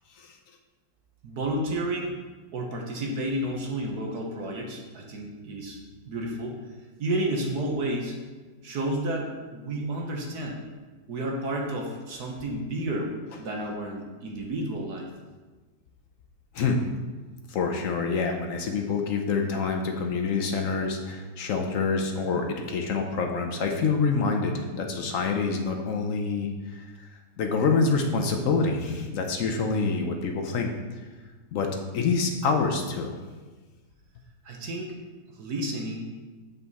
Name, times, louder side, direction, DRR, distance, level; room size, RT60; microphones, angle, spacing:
voice 1, 1.2-2.2 2.5-5.8 6.0-6.6 7.0-8.2 8.6-10.6 11.1-13.1 13.4-15.1 34.4-34.9 35.4-36.1, right 1 dB, 60° right, 0 dB, 1.4 m, -31 dB
voice 2, 17.5-27.1 27.4-30.7 31.5-31.7 31.9-33.1, left 4 dB, 65° left, 3 dB, 0.8 m, -26 dB
7.4 x 5.6 x 4.1 m, 1.3 s
omnidirectional pair, 2.1 m